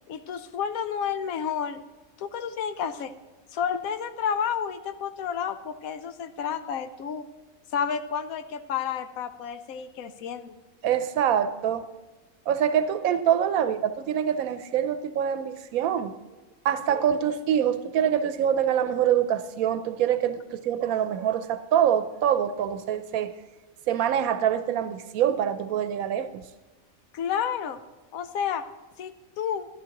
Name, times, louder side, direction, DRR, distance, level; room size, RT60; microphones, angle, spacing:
voice 1, 0.1-1.8 2.2-3.1 3.5-7.2 7.7-10.6 27.1-27.8 28.1-28.6 29.0-29.7, left 7 dB, 85° left, 10 dB, 1.1 m, -30 dB
voice 2, 10.8-11.9 12.5-16.1 16.6-23.3 23.9-26.4, right 9 dB, 90° right, 11 dB, 1.0 m, -25 dB
13.0 x 11.0 x 2.9 m, 1.2 s
omnidirectional pair, 1.4 m